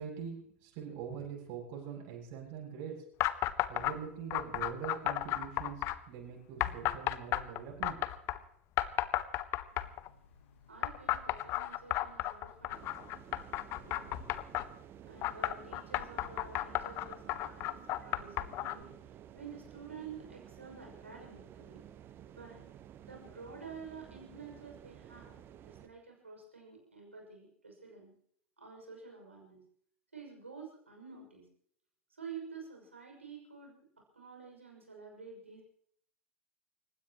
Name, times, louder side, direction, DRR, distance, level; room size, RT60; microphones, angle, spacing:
voice 1, 0.0-2.9 3.7-8.0, right 7 dB, 50° right, -1 dB, 7.8 m, -43 dB
sound 1, 3.2-3.9 4.3-6.0 6.6-8.4 8.8-10.1 10.8-14.7 15.2-18.8, left 15 dB, 40° left, 0.9 m, -33 dB
Train, 9.7-14.6, left 4 dB, 80° left, 3.9 m, -61 dB
voice 2, 10.7-12.9 13.8-14.3 15.0-21.8 22.3-22.7 23.0-25.4 25.6-28.1 28.6-29.6 30.1-31.5 32.1-33.8 34.1-35.6, right 5 dB, 80° right, 1 dB, 6.2 m, -50 dB
sound 2, 12.7-25.9, right 10 dB, 35° right, 1.2 m, -53 dB
29.5 x 16.0 x 3.0 m, 0.64 s
figure-of-eight pair, 85°, 7 cm